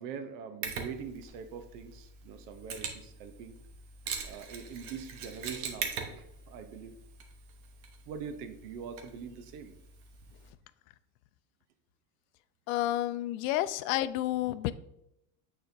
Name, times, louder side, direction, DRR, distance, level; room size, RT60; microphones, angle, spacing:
voice 1, 0.0-3.6 4.2-7.0 8.1-9.7 13.5-13.6, right 6 dB, 90° right, 8 dB, 0.9 m, -43 dB
Mechanisms, 0.6-10.5, right 6 dB, 70° right, 1.3 m, -43 dB
voice 2, 12.7-14.7, left 14 dB, 70° left, 15 dB, 0.5 m, -30 dB
8.8 x 4.3 x 2.7 m, 0.82 s
cardioid pair, 145°, 44 cm